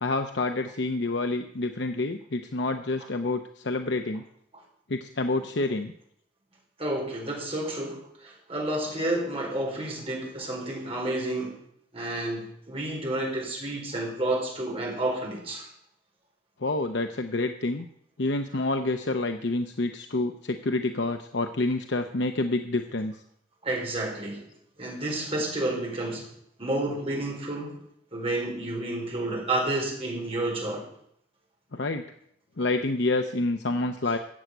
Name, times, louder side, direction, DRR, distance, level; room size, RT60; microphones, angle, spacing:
voice 1, 0.0-4.2 4.9-5.9 16.6-17.8 18.2-23.1 31.7-32.0 32.6-34.2, left 2 dB, 60° left, 6 dB, 0.8 m, -28 dB
voice 2, 6.8-11.6 11.9-15.7 23.6-24.4 24.8-26.3 26.6-27.8 28.1-30.8, right 1 dB, 30° right, -1 dB, 4.5 m, -30 dB
13.5 x 8.0 x 8.3 m, 0.71 s
head